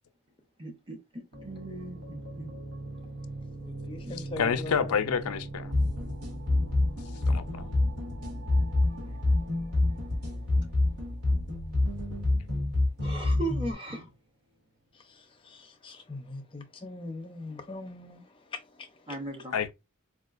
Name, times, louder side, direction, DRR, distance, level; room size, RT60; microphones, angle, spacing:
voice 1, 0.6-2.6 4.0-4.4 13.0-14.1 19.1-19.5, right 2 dB, 25° right, 0.9 m, -38 dB
sound 1, 1.3-14.0, right 2 dB, 60° right, 0.8 m, -43 dB
voice 2, 3.6-4.9 14.9-19.2, left 2 dB, 25° left, 0.6 m, -42 dB
voice 3, 4.4-5.7 7.3-7.7 19.5-19.7, left 6 dB, 90° left, 0.5 m, -28 dB
sound 2, 5.7-13.7, left 2 dB, 80° right, 1.7 m, -27 dB
4.3 x 2.4 x 2.4 m
head